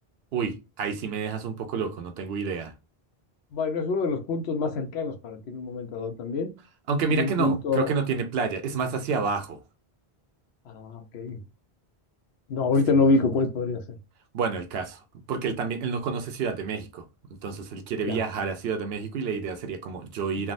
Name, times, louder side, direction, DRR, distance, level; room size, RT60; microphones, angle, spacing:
voice 1, 0.3-2.7 6.9-9.6 12.9-13.1 14.3-15.0 15.3-17.1 17.4-20.5, right 5 dB, 75° right, 0.8 m, -29 dB
voice 2, 3.5-6.5 7.1-7.9 10.7-11.4 12.5-13.8 18.0-18.2, left 3 dB, 85° left, 0.9 m, -26 dB
3.5 x 2.2 x 2.4 m
omnidirectional pair, 1.1 m